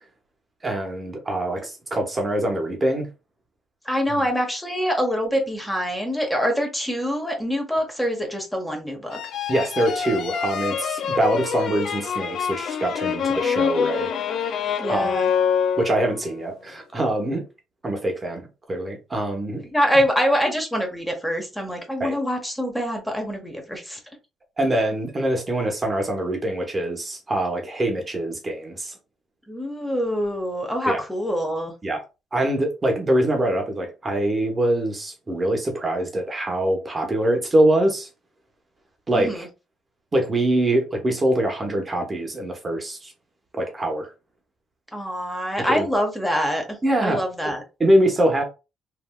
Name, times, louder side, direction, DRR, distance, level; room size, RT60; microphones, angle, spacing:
voice 1, 0.6-3.1 9.5-14.1 14.5-14.6 14.9-15.1 15.8-17.4 17.8-18.4 18.7-19.6 22.0-22.1 24.6-28.9 30.9-31.0 31.8-32.0 32.3-38.1 39.1-39.5 40.1-43.1 43.6-44.1 45.6-45.8 46.8-47.2 47.8-48.4, right 1 dB, 25° right, 0.9 m, -23 dB
voice 2, 3.8-9.2 14.8-15.3 19.7-24.0 29.5-31.7 39.1-39.5 44.9-46.6 47.0-47.6, equal, 5° left, 1.0 m, -25 dB
sound 1, 9.1-16.3, left 7 dB, 65° left, 0.3 m, -26 dB
3.2 x 2.6 x 2.2 m
cardioid pair, 85°, 0 cm